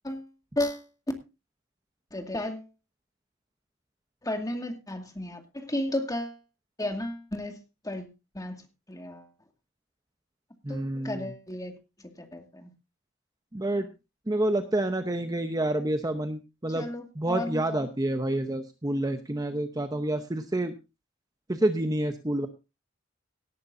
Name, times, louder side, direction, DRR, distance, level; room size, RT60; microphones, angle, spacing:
voice 1, 0.6-0.9 2.1-2.7 4.2-6.4 6.8-8.1 8.3-9.3 10.7-11.7 12.0-12.7 16.7-17.9, left 1 dB, 20° left, 2.2 m, -34 dB
voice 2, 10.6-11.3 13.5-13.9 14.3-16.9 17.2-20.7 21.5-22.5, right 1 dB, 20° right, 0.8 m, -28 dB
18.0 x 11.0 x 2.7 m
head